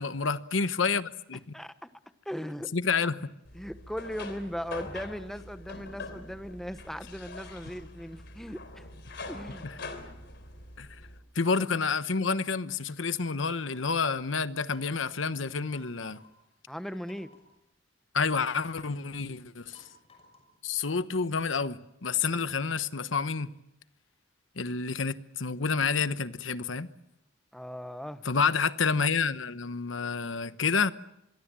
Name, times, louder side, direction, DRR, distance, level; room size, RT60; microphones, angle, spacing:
voice 1, 0.0-1.4 2.7-3.2 9.6-9.7 10.8-10.9 11.3-16.2 18.1-19.8 20.6-23.5 24.6-26.9 28.2-30.9, left 5 dB, 80° left, 1.0 m, -29 dB
voice 2, 1.5-1.9 2.2-2.7 3.5-8.9 9.3-9.7 16.7-17.3 27.5-28.3, equal, ahead, 1.0 m, -38 dB
sound 1, 3.4-11.2, left 2 dB, 65° left, 3.6 m, -44 dB
sound 2, 13.4-14.0 14.7-15.2 15.7-16.3 17.0-17.5 18.3-18.9 19.7-20.6, left 3 dB, 30° left, 6.4 m, -57 dB
26.0 x 22.5 x 7.5 m
head